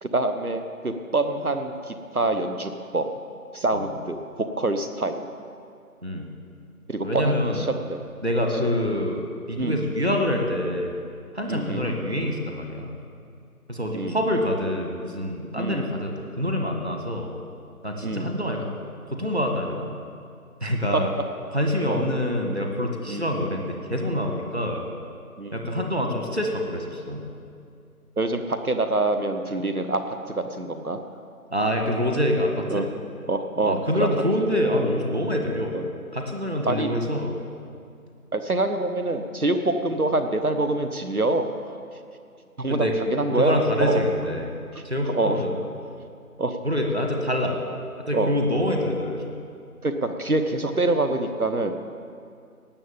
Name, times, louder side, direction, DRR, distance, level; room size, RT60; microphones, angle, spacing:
voice 1, 0.0-3.1 3.5-5.3 6.9-8.0 9.6-9.8 11.5-11.9 13.9-14.2 15.6-15.9 18.0-18.4 20.9-21.0 21.9-22.1 23.1-23.3 25.4-25.6 28.2-31.0 32.7-32.9 33.3-34.1 35.7-35.8 36.7-36.9 38.3-41.8 42.6-44.0 45.1-45.4 46.4-46.6 48.1-48.3 49.8-51.7, right 2 dB, 70° right, 8 dB, 1.2 m, -26 dB
voice 2, 7.0-7.7 8.2-10.9 11.3-13.0 13.7-17.3 17.8-18.7 19.1-19.9 20.6-21.1 21.5-24.9 25.5-27.3 31.5-32.9 33.6-35.8 36.1-37.4 42.7-42.9 43.3-44.5 44.8-45.6 46.6-47.6 48.0-49.3, left 1 dB, 45° right, 2 dB, 1.7 m, -26 dB
18.5 x 7.0 x 7.2 m, 2.4 s
figure-of-eight pair, 175°, 45 cm